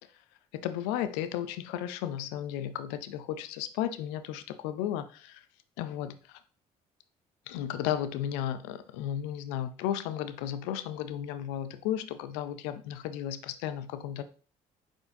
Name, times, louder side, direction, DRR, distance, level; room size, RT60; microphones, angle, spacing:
voice 1, 0.5-5.4 5.8-6.4 7.5-14.2, left 10 dB, 85° left, 0.4 m, -34 dB
4.4 x 4.3 x 2.6 m
hypercardioid pair, 60°, 17 cm